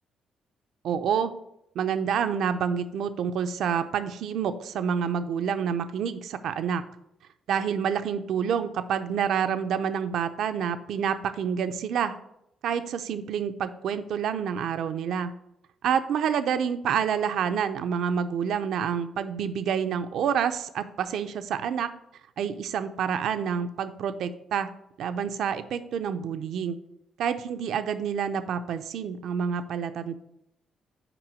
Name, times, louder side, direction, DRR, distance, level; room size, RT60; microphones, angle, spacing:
voice 1, 0.8-1.3 1.8-6.8 7.5-12.2 12.6-15.3 15.8-21.9 22.4-24.7 25.0-26.8 27.2-30.2, right 7 dB, 75° right, 10 dB, 0.5 m, -28 dB
6.0 x 4.9 x 6.1 m, 0.82 s
cardioid pair, 90°, 0 cm